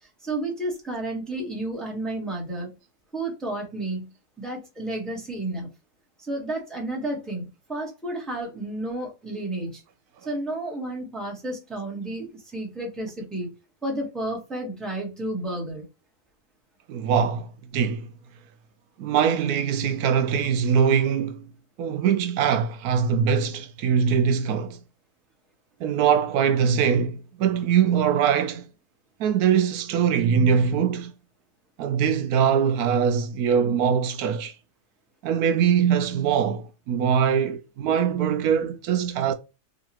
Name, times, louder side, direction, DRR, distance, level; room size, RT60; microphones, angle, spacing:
voice 1, 0.2-2.7 3.1-4.1 4.4-5.7 6.2-9.8 10.2-13.5 13.8-15.8, right 1 dB, ahead, 1.0 m, -31 dB
voice 2, 16.9-18.1 19.0-21.5 21.8-24.8 25.8-28.7 29.2-31.1 31.8-34.5 35.2-39.3, right 7 dB, 80° right, 1.1 m, -22 dB
3.9 x 2.5 x 2.8 m
omnidirectional pair, 1.6 m